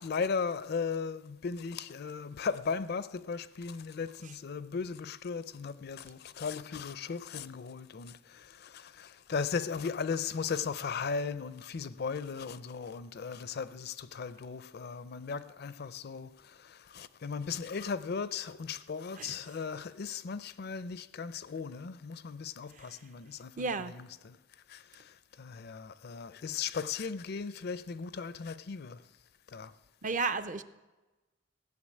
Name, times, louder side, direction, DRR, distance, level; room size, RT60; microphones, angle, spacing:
voice 1, 0.0-24.4 24.7-29.0 29.5-29.7, left 5 dB, 55° left, 0.5 m, -37 dB
voice 2, 23.6-23.9 30.0-30.6, right 4 dB, 40° right, 0.6 m, -32 dB
16.0 x 6.8 x 8.6 m
head